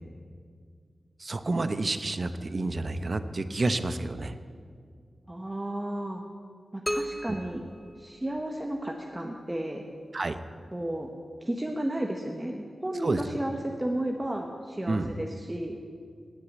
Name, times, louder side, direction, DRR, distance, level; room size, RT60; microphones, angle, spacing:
voice 1, 1.2-4.3 7.3-7.4 10.1-10.4 13.0-13.2 14.9-15.1, right 2 dB, 45° right, 11 dB, 0.8 m, -29 dB
voice 2, 5.3-6.2 6.7-7.6 8.0-9.9 10.7-11.1 11.4-15.8, right 1 dB, 15° right, 2 dB, 1.0 m, -33 dB
sound 1, 6.9-8.8, equal, 5° left, 0.6 m, -35 dB
18.5 x 6.6 x 8.5 m, 2.1 s
wide cardioid pair, 95°, 0 cm